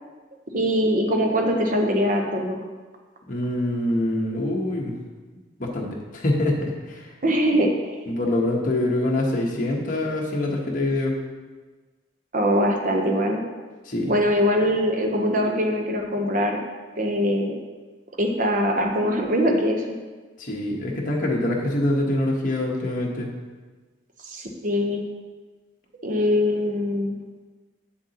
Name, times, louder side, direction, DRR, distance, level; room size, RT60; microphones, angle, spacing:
voice 1, 0.5-2.6 7.2-7.7 12.3-13.4 14.1-16.6 17.0-17.6 18.2-20.0 24.3-25.0 26.0-27.1, equal, 45° right, 2 dB, 0.9 m, -22 dB
voice 2, 3.3-4.9 5.6-5.9 6.1-7.1 8.1-11.2 13.9-14.1 20.4-23.3, left 1 dB, 45° left, -2 dB, 1.1 m, -25 dB
7.8 x 7.1 x 2.9 m, 1.3 s
head